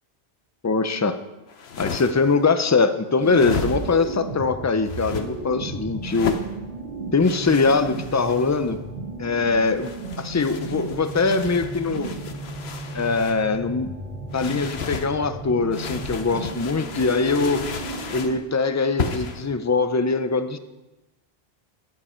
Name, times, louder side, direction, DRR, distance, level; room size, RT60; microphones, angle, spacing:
voice 1, 0.6-1.2 1.8-6.4 7.1-8.8 9.2-9.9 10.2-12.1 12.9-13.9 14.3-17.6 18.1-20.6, left 4 dB, 20° left, 10 dB, 0.5 m, -22 dB
sound 1, 1.5-2.4 3.2-4.1 4.8-5.3 6.0-6.5 7.2-8.7 9.7-13.4 14.3-15.1 15.7-18.4 19.0-19.4, left 5 dB, 80° left, 1.1 m, -34 dB
sound 2, 3.2-18.3, right 3 dB, 90° right, 1.8 m, -34 dB
13.5 x 9.8 x 4.4 m, 1.0 s
omnidirectional pair, 1.0 m